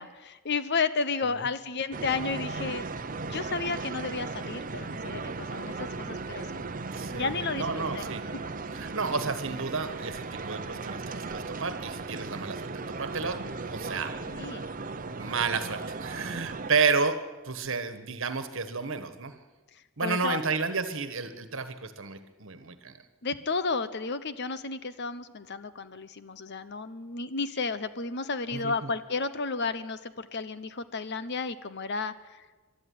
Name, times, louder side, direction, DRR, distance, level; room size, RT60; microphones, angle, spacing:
voice 1, 0.0-2.9 3.3-6.6 7.1-8.1 14.3-14.7 20.0-20.4 23.2-32.5, left 4 dB, 50° left, 13 dB, 1.0 m, -32 dB
sound 1, 1.9-16.7, right 3 dB, 40° right, 0.8 m, -36 dB
voice 2, 6.9-8.2 8.7-14.1 15.1-19.3 20.0-23.0 28.5-28.9, right 4 dB, 60° right, 10 dB, 1.6 m, -31 dB
22.5 x 12.5 x 9.6 m, 1.3 s
head